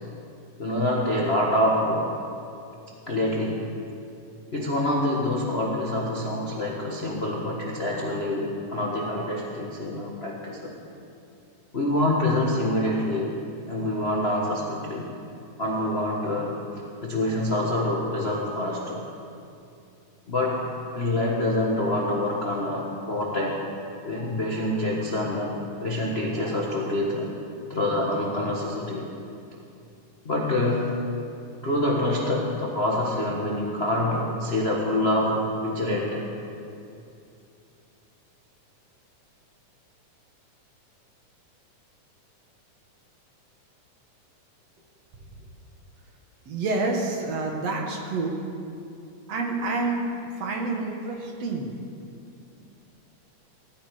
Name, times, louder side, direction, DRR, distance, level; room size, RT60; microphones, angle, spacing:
voice 1, 0.6-2.1 3.1-3.7 4.5-10.7 11.7-13.3 13.7-15.1 15.6-16.6 17.0-19.0 20.3-23.6 24.0-27.3 27.7-29.0 30.2-31.0 31.6-36.2, left 1 dB, 40° left, -3 dB, 0.9 m, -26 dB
voice 2, 46.5-48.4 49.3-50.1 50.4-51.7, right 3 dB, 60° right, 1 dB, 2.3 m, -28 dB
17.0 x 14.5 x 5.0 m, 2.6 s
omnidirectional pair, 3.6 m